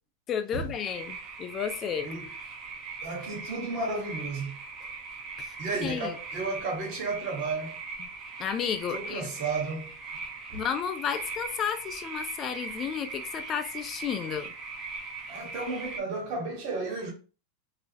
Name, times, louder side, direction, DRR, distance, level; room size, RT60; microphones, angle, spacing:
voice 1, 0.3-2.1 5.4-6.1 8.0-8.1 8.4-9.3 10.5-14.5, left 8 dB, 35° left, 0.3 m, -32 dB
sound 1, 0.7-16.0, right 4 dB, 35° right, 0.5 m, -40 dB
voice 2, 3.0-4.6 5.6-7.8 8.9-9.9 10.5-10.6 15.3-17.1, right 3 dB, 55° right, 1.1 m, -33 dB
2.4 x 2.0 x 2.6 m
hypercardioid pair, 110°, 0 cm